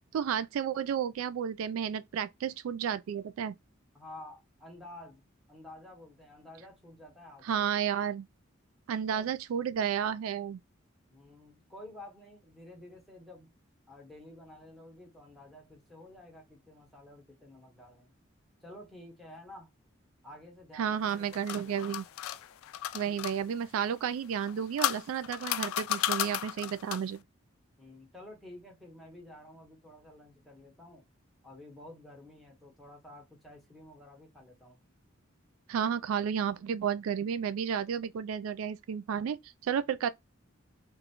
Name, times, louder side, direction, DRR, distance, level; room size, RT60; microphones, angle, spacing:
voice 1, 0.1-3.5 7.4-8.3 8.9-10.6 20.8-22.0 22.9-27.2 35.7-40.1, right 8 dB, 90° right, 0.3 m, -32 dB
voice 2, 3.9-7.7 9.1-9.3 11.1-13.5 13.9-18.1 18.6-19.7 20.2-22.0 23.0-23.4 27.8-31.0 31.4-34.8, left 1 dB, ahead, 1.1 m, -51 dB
sound 1, 21.0-23.4 24.3-27.2, left 12 dB, 85° left, 0.3 m, -34 dB
3.9 x 2.3 x 2.8 m
head